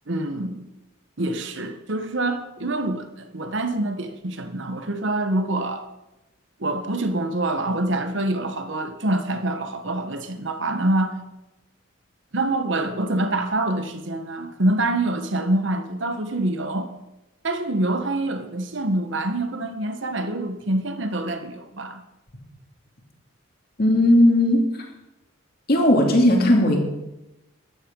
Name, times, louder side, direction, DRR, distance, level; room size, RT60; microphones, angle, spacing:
voice 1, 0.1-0.6 1.2-5.8 6.6-11.1 12.3-16.9 17.4-22.0, right 2 dB, 60° right, 8 dB, 1.2 m, -25 dB
voice 2, 23.8-24.8 25.7-26.8, left 1 dB, 45° left, 1 dB, 2.5 m, -17 dB
13.5 x 10.5 x 5.3 m, 0.97 s
head